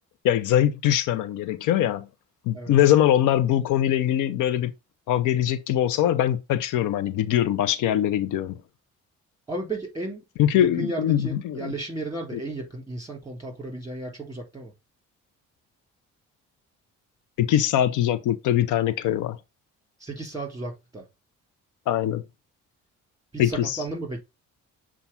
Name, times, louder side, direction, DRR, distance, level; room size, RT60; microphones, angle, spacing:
voice 1, 0.2-2.1 2.5-4.7 5.1-8.6 10.4-11.7 12.3-12.4 17.4-19.4 21.9-22.2 23.4-23.8, left 11 dB, 85° left, 0.6 m, -22 dB
voice 2, 9.5-10.2 10.5-14.7 20.0-21.0 23.3-24.2, right 2 dB, 10° right, 3.5 m, -34 dB
7.1 x 2.4 x 5.5 m
cardioid pair, 90°, 30 cm